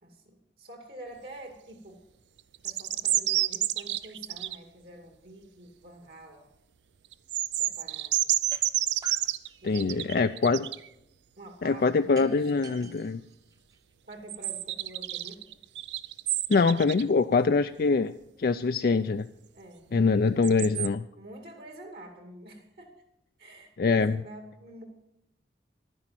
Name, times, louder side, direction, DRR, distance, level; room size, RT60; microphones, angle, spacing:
voice 1, 0.0-2.0 2.6-6.5 7.6-8.3 9.6-10.5 11.4-12.8 14.0-15.5 19.5-20.5 21.2-22.9 23.4-24.8, right 1 dB, 60° right, 4 dB, 2.5 m, -47 dB
sound 1, 2.5-4.6 7.1-10.9 14.3-17.0 20.4-20.9, right 14 dB, 90° right, 0.5 m, -29 dB
sound 2, 8.5-8.6 9.0-10.2 12.1-14.1, right 2 dB, 20° right, 0.9 m, -50 dB
voice 2, 9.6-10.7 11.6-13.2 16.5-19.3 19.9-21.0 23.8-24.2, left 4 dB, 55° left, 9 dB, 0.4 m, -24 dB
11.5 x 10.0 x 7.4 m, 0.82 s
head